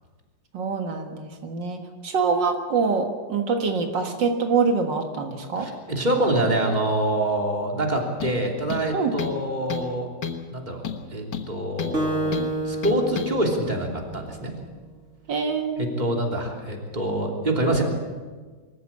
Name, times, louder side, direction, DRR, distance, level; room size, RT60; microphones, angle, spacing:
voice 1, 0.5-5.7 8.9-9.1 15.3-16.1, right 5 dB, 80° right, 4 dB, 2.3 m, -25 dB
voice 2, 5.6-10.1 10.5-12.4 12.6-14.5 15.8-17.8, right 1 dB, 25° right, 1 dB, 3.2 m, -25 dB
sound 1, 8.2-8.4 8.7-9.4 9.7-9.9 10.2-10.5 10.8-12.0 12.3-12.5 12.8-13.3, left 7 dB, 70° left, 2.0 m, -31 dB
Acoustic guitar, 11.9-14.7, right 2 dB, 40° right, 3.4 m, -30 dB
24.5 x 14.0 x 8.6 m, 1.4 s
omnidirectional pair, 1.9 m